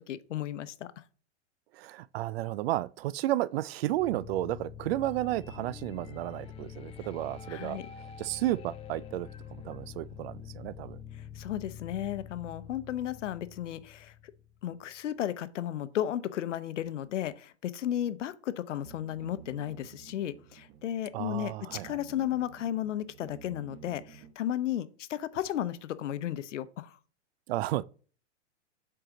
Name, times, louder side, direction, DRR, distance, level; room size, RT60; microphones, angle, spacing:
voice 1, 0.1-1.0 7.5-7.9 11.3-14.1 14.6-27.0, left 11 dB, 85° left, 0.8 m, -34 dB
voice 2, 1.7-7.8 8.2-9.3 9.6-11.0 21.1-22.0 27.5-27.9, right 15 dB, 60° right, 0.4 m, -32 dB
sound 1, 3.9-14.9, left 8 dB, 15° left, 0.5 m, -46 dB
sound 2, 18.8-24.3, right 8 dB, 35° right, 1.2 m, -52 dB
7.8 x 4.8 x 3.9 m
hypercardioid pair, 140°, 35 cm